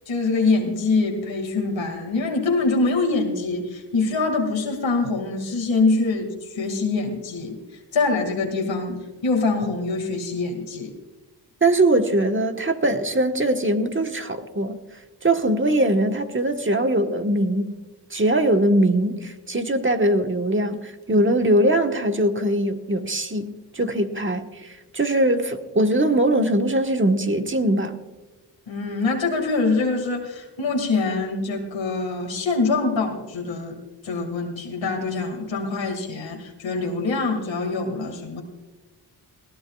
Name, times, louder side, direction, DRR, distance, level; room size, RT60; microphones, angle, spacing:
voice 1, 0.1-7.6 7.9-10.9 28.7-33.8 34.0-38.4, left 3 dB, 85° left, 2 dB, 2.2 m, -24 dB
voice 2, 11.6-14.8 15.2-17.7 18.1-28.0, right 1 dB, 25° right, 6 dB, 1.3 m, -21 dB
20.0 x 16.5 x 2.3 m, 1.2 s
cardioid pair, 70°, 44 cm